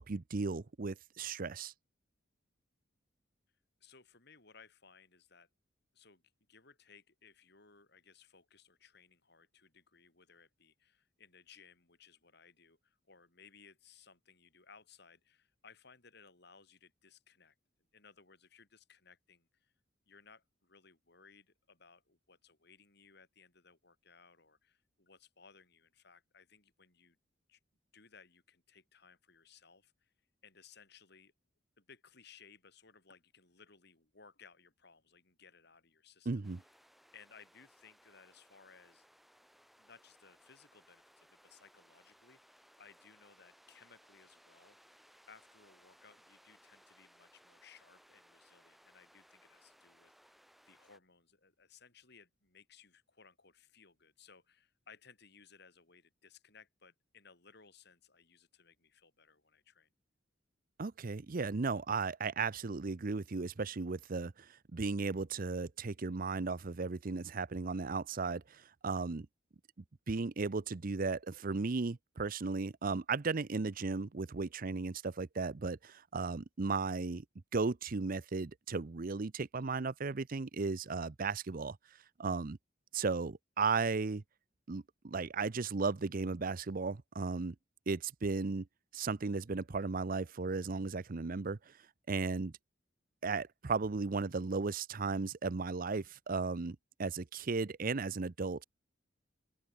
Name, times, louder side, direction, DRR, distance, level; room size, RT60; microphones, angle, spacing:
voice 1, 0.0-1.7 36.3-36.6 60.8-64.5 64.7-69.3 70.1-77.2 77.5-81.8 82.2-82.6 82.9-84.2 84.7-87.5 87.9-88.7 88.9-91.7 92.1-92.5 93.2-98.6, right 4 dB, 45° right, 0.6 m, -35 dB
voice 2, 3.8-5.5 5.9-6.2 6.5-17.6 17.9-19.7 20.1-27.2 27.5-27.6 27.9-30.1 30.4-31.3 31.8-36.3 37.1-39.1 39.8-44.9 45.3-50.4 50.7-59.9 76.2-76.4, left 5 dB, 60° left, 5.2 m, -62 dB
sound 1, 36.4-51.0, equal, ahead, 4.2 m, -65 dB
open air
head